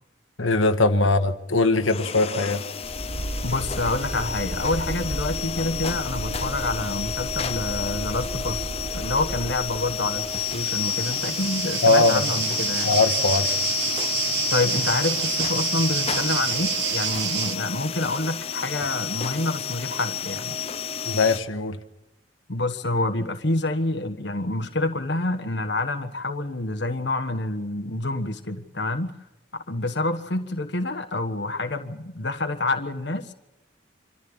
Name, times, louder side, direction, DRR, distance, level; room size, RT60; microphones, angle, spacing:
voice 1, 0.4-2.6 11.8-12.2 12.8-13.6 21.0-21.8, left 3 dB, 90° left, 1.5 m, -21 dB
sound 1, 1.8-21.4, left 9 dB, 30° left, 0.7 m, -30 dB
sound 2, 2.8-11.7, right 1 dB, 35° right, 1.3 m, -34 dB
voice 2, 3.4-12.9 14.5-20.6 22.5-29.1 29.5-33.3, left 2 dB, 60° left, 1.4 m, -27 dB
sound 3, 9.9-17.5, right 8 dB, 65° right, 1.6 m, -28 dB
26.0 x 14.5 x 8.8 m
head